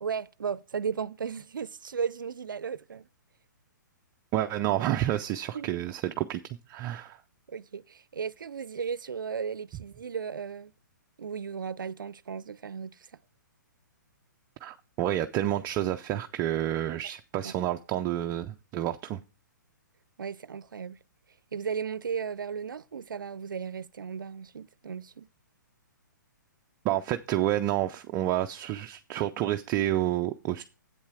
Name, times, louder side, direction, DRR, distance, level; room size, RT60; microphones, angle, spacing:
voice 1, 0.0-3.1 5.5-5.8 7.5-10.7 11.2-13.0 17.4-17.5 20.2-21.0 21.5-25.3, right 6 dB, 85° right, 0.4 m, -35 dB
voice 2, 4.3-6.4 6.7-7.2 14.6-19.2 26.8-30.6, right 13 dB, 25° right, 0.4 m, -29 dB
8.2 x 7.2 x 4.8 m
hypercardioid pair, 135°, 11 cm